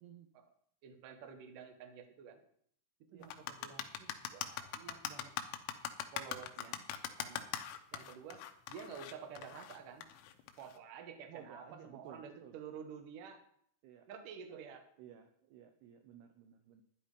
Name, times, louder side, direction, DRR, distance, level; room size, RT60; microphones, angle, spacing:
voice 1, 0.8-2.4 3.1-5.3 6.1-6.8 7.2-7.5 7.9-8.4 8.7-10.0 10.6-13.4 14.1-14.8, right 7 dB, 60° right, 4 dB, 2.5 m, -50 dB
sound 1, 3.2-10.8, left 9 dB, 85° left, 3.5 m, -43 dB
voice 2, 11.3-12.6 13.8-14.1 15.0-16.8, right 9 dB, 80° right, 6 dB, 2.4 m, -55 dB
12.5 x 10.0 x 5.2 m, 0.66 s
omnidirectional pair, 5.7 m